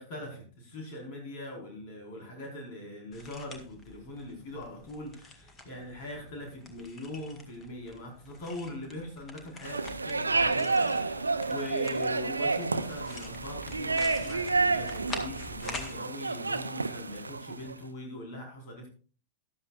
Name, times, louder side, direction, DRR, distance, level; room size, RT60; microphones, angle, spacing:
voice 1, 0.0-18.9, left 1 dB, 50° left, 0 dB, 4.9 m, -41 dB
sound 1, 3.1-15.9, left 3 dB, 20° left, 1.9 m, -46 dB
sound 2, 9.6-17.7, right 3 dB, 80° right, 0.6 m, -30 dB
14.0 x 12.0 x 2.5 m, 0.39 s
figure-of-eight pair, 90°, 0 cm